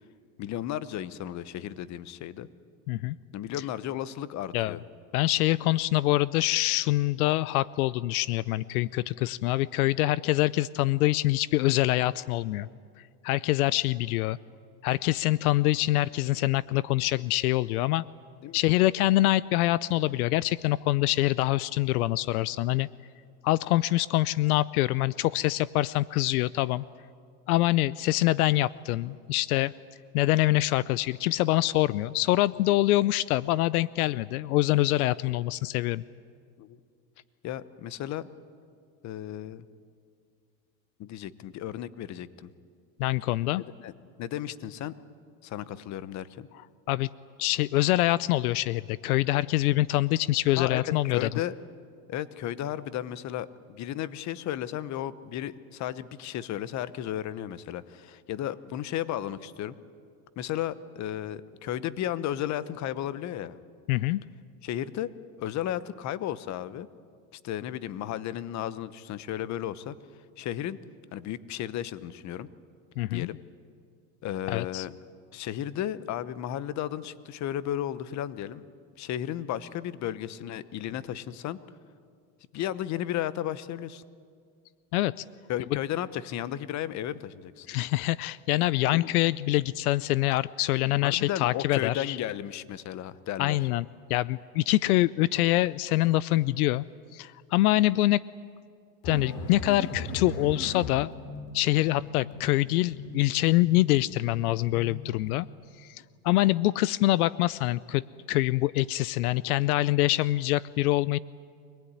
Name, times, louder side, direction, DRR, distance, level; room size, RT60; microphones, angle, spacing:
voice 1, 0.4-2.5 3.3-4.8 18.4-18.6 36.6-36.8 37.4-38.3 39.0-39.7 41.0-42.5 43.6-43.9 44.2-44.9 45.4-46.5 50.6-51.5 52.1-59.7 60.4-63.6 64.6-65.1 65.4-66.9 67.3-69.9 70.4-70.8 71.1-72.5 73.1-73.4 74.2-74.9 75.3-78.7 79.0-81.6 82.5-84.0 85.5-87.7 88.9-89.1 91.0-93.7, left 11 dB, 40° left, 16 dB, 1.0 m, -34 dB
voice 2, 5.1-12.7 13.2-14.4 14.8-18.0 18.5-22.9 23.4-26.8 27.5-29.7 30.1-36.0 43.0-43.6 46.9-47.1 47.4-51.3 63.9-64.2 73.0-73.3 74.5-74.9 84.9-85.1 87.7-92.2 93.4-96.8 97.1-98.2 99.1-101.1 101.5-105.5 105.8-111.2, left 17 dB, 80° left, 20 dB, 0.6 m, -25 dB
sound 1, 99.0-105.4, left 1 dB, 55° left, 3.4 m, -39 dB
25.0 x 19.5 x 9.8 m, 2.2 s
supercardioid pair, 120°, 44 cm